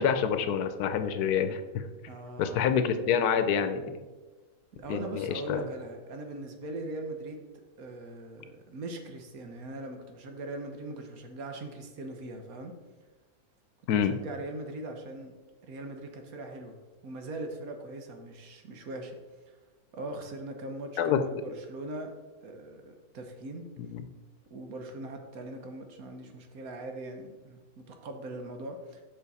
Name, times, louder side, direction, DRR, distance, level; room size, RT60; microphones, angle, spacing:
voice 1, 0.0-1.8 2.4-4.0 4.9-5.6 13.9-14.2 21.0-21.2 23.8-24.0, left 7 dB, 85° left, 9 dB, 1.2 m, -27 dB
voice 2, 2.1-2.8 4.7-7.4 7.8-12.7 13.9-15.3 15.6-19.2 19.5-19.6 19.9-22.1 22.4-23.6 24.5-29.0, right 2 dB, 70° right, 4 dB, 1.4 m, -40 dB
7.0 x 5.8 x 4.1 m, 1.3 s
omnidirectional pair, 1.6 m